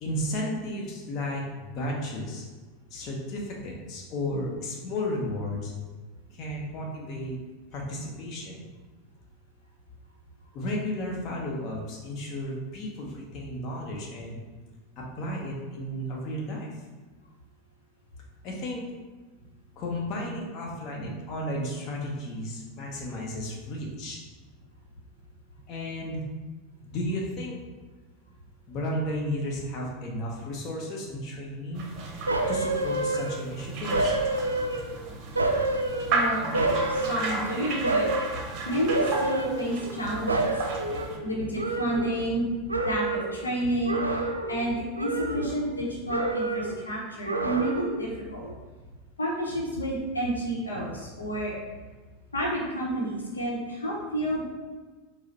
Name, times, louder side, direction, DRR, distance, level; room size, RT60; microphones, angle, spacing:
voice 1, 0.0-2.5 2.9-5.7 6.3-7.4 7.7-8.6 10.5-14.4 15.0-16.7 18.4-18.8 19.8-24.2 25.7-26.2 26.8-27.5 28.7-31.8 32.5-34.1, left 1 dB, 40° left, -2 dB, 0.8 m, -33 dB
sound 1, 31.8-41.2, right 3 dB, 40° right, 0.7 m, -34 dB
sound 2, 32.3-33.5 33.9-35.0 35.4-37.5 37.8-38.4 38.9-40.0 40.3-42.4 42.7-43.4 43.8-44.7 45.0-45.8 46.1-46.8 47.2-48.1 48.4-48.5, right 2 dB, 85° right, 0.3 m, -28 dB
voice 2, 36.1-36.5 36.9-38.1 38.6-40.5 41.2-42.5 42.8-48.5 49.2-51.5 52.3-54.5, right 1 dB, 80° left, -3 dB, 0.8 m, -30 dB
4.8 x 2.1 x 4.1 m, 1.3 s
figure-of-eight pair, 85°, 0 cm